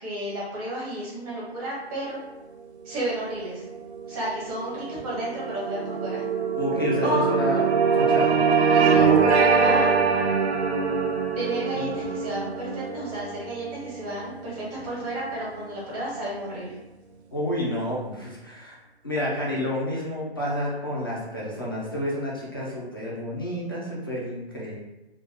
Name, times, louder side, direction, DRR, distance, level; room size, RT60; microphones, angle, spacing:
voice 1, 0.0-2.2 2.8-3.6 4.1-6.2 7.0-7.3 8.7-9.1 9.6-9.9 11.3-16.7, right 1 dB, 15° right, -7 dB, 0.6 m, -32 dB
sound 1, 3.2-15.8, right 5 dB, 90° right, 0.5 m, -24 dB
voice 2, 6.5-8.4 11.7-12.0 17.3-18.8 19.0-24.8, left 1 dB, 25° left, -6 dB, 0.3 m, -29 dB
2.1 x 2.0 x 3.4 m, 1.0 s
hypercardioid pair, 155°, 33 cm